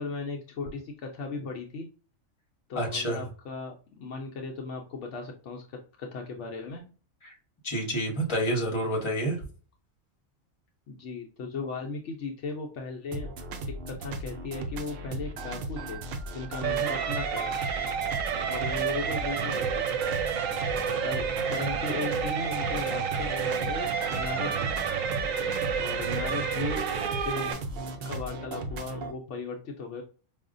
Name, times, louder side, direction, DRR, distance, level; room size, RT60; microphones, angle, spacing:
voice 1, 0.0-1.9 2.7-6.8 10.9-13.3 13.6-16.0 16.3-17.4 18.5-20.0 21.0-24.7 25.8-26.8 27.1-27.5 28.0-30.0, left 4 dB, 70° left, 1 dB, 0.8 m, -36 dB
voice 2, 2.7-3.2 7.2-7.3 7.6-9.4, right 1 dB, 25° left, 0 dB, 1.0 m, -28 dB
sound 1, 13.1-29.1, right 2 dB, 60° right, 0.6 m, -37 dB
sound 2, 16.6-27.5, right 7 dB, 90° right, 1.0 m, -30 dB
4.9 x 2.4 x 2.5 m, 0.38 s
omnidirectional pair, 1.3 m